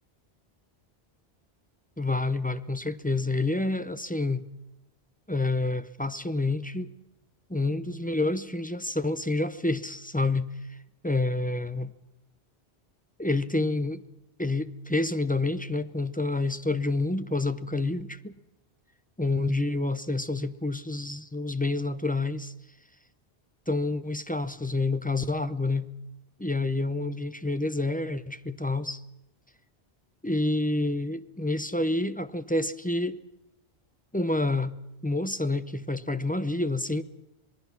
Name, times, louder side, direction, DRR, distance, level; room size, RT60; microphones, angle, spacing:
voice 1, 2.0-4.4 5.3-6.9 7.5-10.8 11.0-11.9 13.2-14.0 14.4-18.3 19.2-22.5 23.7-25.9 26.4-29.0 30.2-33.2 34.1-34.7 35.0-37.0, left 2 dB, 10° left, 0.6 m, -28 dB
26.0 x 20.0 x 5.9 m
omnidirectional pair, 1.1 m